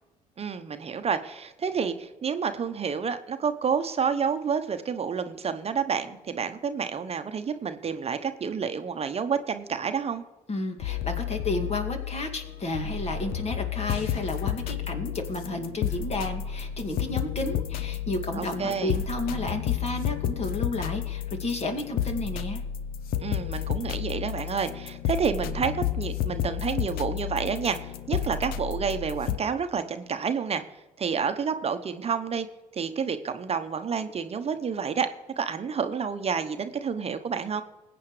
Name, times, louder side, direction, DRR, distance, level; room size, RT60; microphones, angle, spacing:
voice 1, 0.4-10.2 18.3-18.9 23.2-30.6 31.0-32.5 32.7-35.1 35.4-37.6, right 6 dB, 40° right, 8 dB, 0.9 m, -29 dB
voice 2, 10.5-22.6, left 2 dB, 40° left, 5 dB, 2.3 m, -32 dB
sound 1, 10.8-29.4, left 10 dB, 65° left, 0.7 m, -31 dB
21.0 x 8.7 x 3.3 m, 1.1 s
hypercardioid pair, 55°, 16 cm